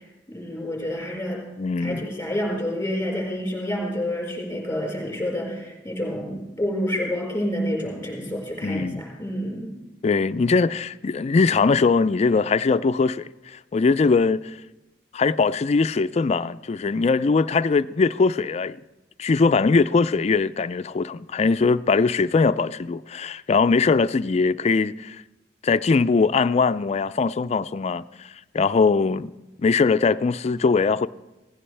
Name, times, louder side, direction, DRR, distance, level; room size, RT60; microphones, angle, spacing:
voice 1, 0.3-1.4 1.8-9.7, equal, 15° left, 4.8 m, -28 dB
voice 2, 1.6-2.1 8.6-9.0 10.0-14.6 15.1-18.8 19.2-25.2 25.6-31.1, left 4 dB, 40° left, 0.3 m, -21 dB
17.0 x 15.5 x 3.3 m
head